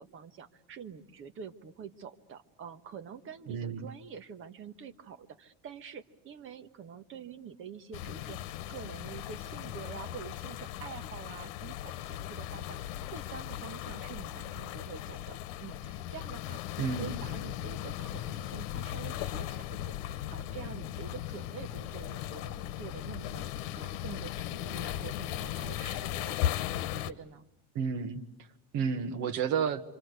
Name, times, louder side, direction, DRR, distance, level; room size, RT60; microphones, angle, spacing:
voice 1, 0.0-16.6 17.0-23.5 23.8-27.4, right 7 dB, 35° right, 8 dB, 1.5 m, -47 dB
voice 2, 3.5-3.8 16.8-17.1 27.8-28.2 28.7-29.8, right 6 dB, 50° right, 9 dB, 1.8 m, -31 dB
sound 1, 7.9-27.1, left 12 dB, 75° left, 1.3 m, -37 dB
27.0 x 26.5 x 8.2 m, 0.77 s
cardioid pair, 160°, 36 cm